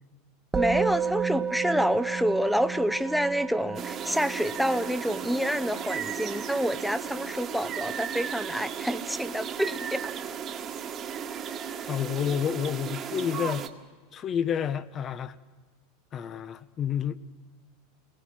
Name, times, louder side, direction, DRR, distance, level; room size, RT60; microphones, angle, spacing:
voice 1, 0.5-10.1, equal, ahead, 12 dB, 1.0 m, -28 dB
Musical instrument, 0.5-10.1, right 7 dB, 15° right, 1.3 m, -34 dB
sound 1, 3.7-13.7, right 8 dB, 35° right, 1.7 m, -35 dB
voice 2, 11.8-13.7 14.1-15.3 16.1-17.2, left 8 dB, 35° left, 14 dB, 1.0 m, -29 dB
28.5 x 20.0 x 6.2 m, 1.4 s
hypercardioid pair, 100°, 0 cm